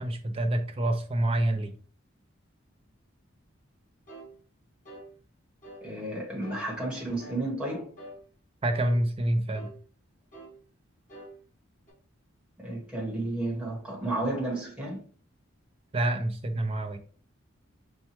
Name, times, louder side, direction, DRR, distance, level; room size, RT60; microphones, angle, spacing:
voice 1, 0.0-1.7 8.6-9.7 15.9-17.0, right 1 dB, 25° right, 0.4 m, -27 dB
sound 1, 4.1-4.3 4.8-5.1 5.6-5.9 6.4-6.7 7.2-7.4 8.0-8.2 8.7-9.0 9.5-9.8 10.3-10.6 11.1-11.3 11.9-12.0, right 1 dB, 40° left, 1.9 m, -46 dB
voice 2, 5.8-7.9 12.6-15.0, right 2 dB, 5° right, 1.2 m, -32 dB
5.5 x 2.2 x 3.0 m
head